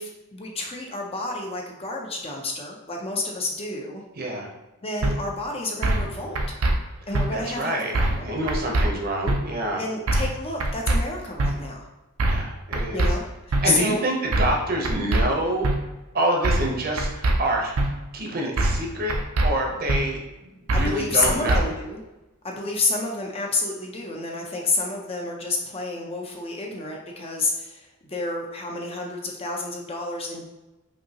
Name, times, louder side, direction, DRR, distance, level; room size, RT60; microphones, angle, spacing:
voice 1, 0.0-4.0 4.8-6.4 7.1-8.3 9.8-11.9 12.9-14.0 20.7-22.0 22.4-30.5, left 2 dB, 25° left, 0 dB, 0.6 m, -29 dB
voice 2, 4.2-4.5 7.3-7.9 8.2-9.8 12.2-13.1 13.6-15.7 16.1-17.7 18.1-19.1 19.4-21.7, right 1 dB, 45° right, 0 dB, 0.8 m, -27 dB
sound 1, 5.0-5.1 5.8-6.1 6.4-6.7 7.1-7.3 7.9-8.2 8.5-8.9 9.3-9.4 10.1-10.3 10.6-11.0 11.4-11.5 12.2-12.4 12.7-13.1 13.5-13.6 14.3-14.6 14.8-15.2 15.6-15.8 16.4-16.7 17.0-17.4 17.8-17.9 18.6-18.8 19.1-19.5 19.9-20.0 20.7-20.9 21.2-21.6, right 2 dB, 75° right, 0.5 m, -22 dB
5.3 x 2.8 x 2.9 m, 1.0 s
head